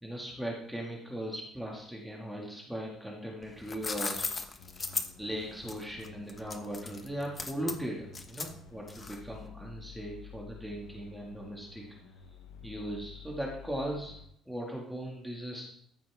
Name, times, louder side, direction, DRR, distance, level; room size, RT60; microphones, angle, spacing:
voice 1, 0.0-4.3 5.2-11.9 12.6-14.2 14.5-15.6, right 1 dB, ahead, -2 dB, 2.1 m, -38 dB
sound 1, 3.4-9.4, left 3 dB, 30° left, 1.2 m, -37 dB
sound 2, 4.6-14.3, left 6 dB, 85° left, 1.0 m, -51 dB
14.5 x 5.8 x 3.6 m, 0.69 s
supercardioid pair, 75°, 0 cm